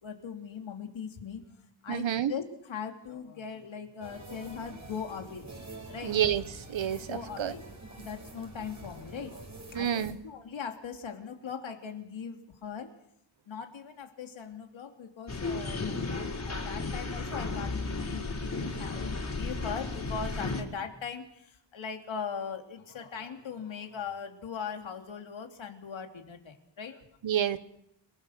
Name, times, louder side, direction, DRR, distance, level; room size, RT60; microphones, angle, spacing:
voice 1, 0.0-1.4 1.8-5.5 5.9-6.2 7.1-7.7 8.0-12.9 13.5-27.1, left 6 dB, 85° left, 5 dB, 3.1 m, -40 dB
voice 2, 1.9-2.3 6.0-6.4 6.7-7.5 9.7-10.2 27.2-27.6, right 10 dB, 85° right, 13 dB, 1.4 m, -28 dB
sound 1, 4.0-10.1, right 2 dB, 40° right, 5.7 m, -46 dB
sound 2, 15.3-20.6, left 3 dB, 35° left, 4.6 m, -34 dB
29.5 x 18.5 x 6.6 m, 0.77 s
wide cardioid pair, 135°, 45 cm